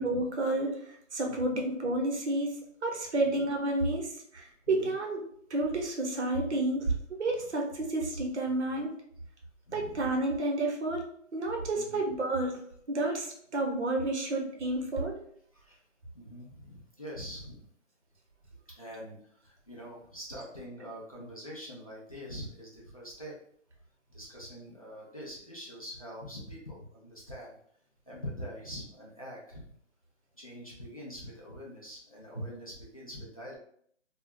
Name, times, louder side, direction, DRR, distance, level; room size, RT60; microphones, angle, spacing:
voice 1, 0.0-8.9 9.7-11.0 11.3-12.6 12.9-15.2, right 2 dB, 60° right, 1 dB, 0.9 m, -30 dB
voice 2, 1.3-1.6 3.2-3.4 4.7-4.9 9.7-10.0 11.7-12.0 15.5-15.8 16.1-17.7 18.7-23.4 24.1-27.6 28.1-29.7 30.4-33.6, equal, 30° left, -5 dB, 0.4 m, -44 dB
2.2 x 2.0 x 3.5 m, 0.64 s
figure-of-eight pair, 155°, 37 cm